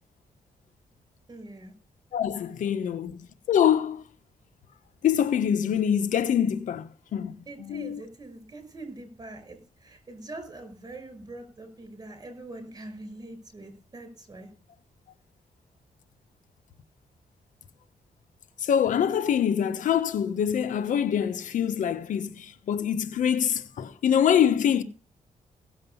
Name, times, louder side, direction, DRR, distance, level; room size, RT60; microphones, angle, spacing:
voice 1, 1.3-1.7 7.5-14.5, right 2 dB, 30° right, 5.4 m, -43 dB
voice 2, 2.1-4.0 5.0-8.0 18.6-24.8, left 9 dB, 75° left, 1.0 m, -25 dB
16.5 x 7.6 x 5.5 m
cardioid pair, 95°, 13 cm